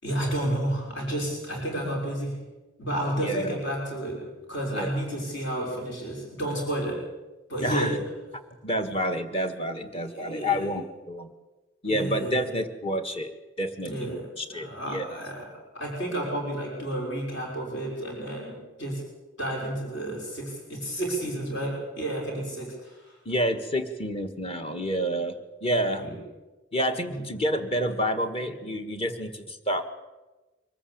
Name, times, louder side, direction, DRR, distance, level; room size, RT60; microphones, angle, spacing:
voice 1, 0.0-2.5 2.8-7.1 7.5-8.1 9.8-10.7 11.8-12.5 13.8-15.5 15.7-19.0 19.4-23.2 26.0-26.2 27.1-27.2, right 1 dB, 60° left, -1 dB, 5.9 m, -31 dB
voice 2, 3.2-3.6 4.7-4.9 7.6-8.0 8.6-11.3 11.8-15.1 23.2-25.3 25.6-26.0 26.7-29.8, equal, 30° left, 7 dB, 1.7 m, -29 dB
24.5 x 14.0 x 8.7 m, 1.1 s
head